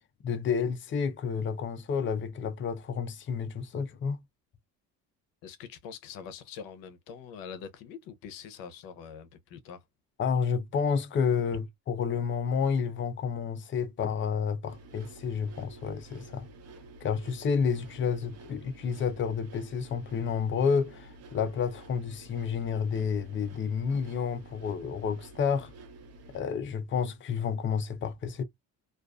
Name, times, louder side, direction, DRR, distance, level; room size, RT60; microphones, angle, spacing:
voice 1, 0.2-4.2 10.2-16.5 17.0-25.7 26.3-28.4, left 6 dB, 35° left, 0.6 m, -30 dB
voice 2, 5.4-9.8, left 7 dB, 85° left, 0.7 m, -44 dB
sound 1, 14.7-26.4, right 2 dB, 45° right, 0.9 m, -50 dB
2.4 x 2.4 x 2.3 m
cardioid pair, 105°, 35 cm